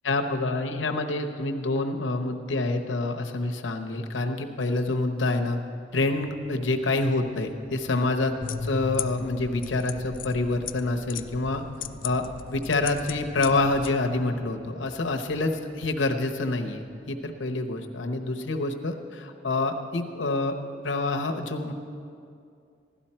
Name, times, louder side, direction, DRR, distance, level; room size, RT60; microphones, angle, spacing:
voice 1, 0.0-5.6 5.9-11.6 12.0-20.5 20.8-21.7, left 2 dB, 85° left, 4 dB, 0.9 m, -27 dB
sound 1, 5.9-17.3, equal, 55° right, 3.4 m, -52 dB
sound 2, 8.4-13.9, left 6 dB, 50° left, 0.4 m, -37 dB
15.5 x 12.5 x 4.4 m, 2.4 s
head